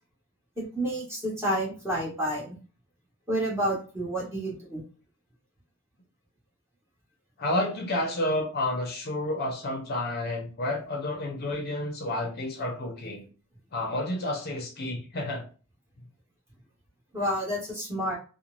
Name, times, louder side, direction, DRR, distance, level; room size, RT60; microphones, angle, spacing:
voice 1, 0.6-2.6 3.3-4.8 17.1-18.1, equal, 15° right, -5 dB, 1.4 m, -29 dB
voice 2, 7.4-13.2 13.7-15.4, left 1 dB, 50° left, 1 dB, 0.7 m, -30 dB
3.1 x 2.2 x 2.5 m, 0.36 s
head